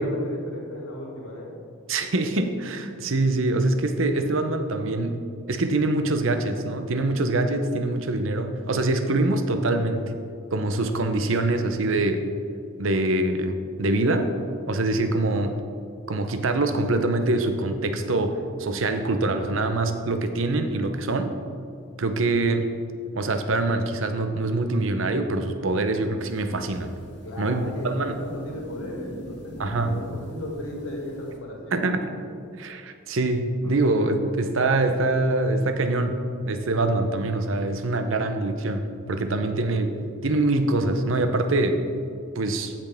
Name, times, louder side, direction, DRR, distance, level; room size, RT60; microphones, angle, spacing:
voice 1, 0.0-1.5 27.2-31.9, left 1 dB, 85° left, -1 dB, 2.1 m, -36 dB
voice 2, 1.9-5.2 5.5-10.1 10.5-12.3 12.8-14.3 14.7-15.6 16.1-21.3 22.0-22.7 23.1-26.9 27.4-28.1 29.6-30.0 31.7-32.2 32.6-40.0 40.2-41.8 42.4-42.7, right 2 dB, 75° right, 7 dB, 0.7 m, -24 dB
sound 1, 26.2-31.4, right 1 dB, 55° left, 1.6 m, -42 dB
15.5 x 5.9 x 3.5 m, 2.4 s
head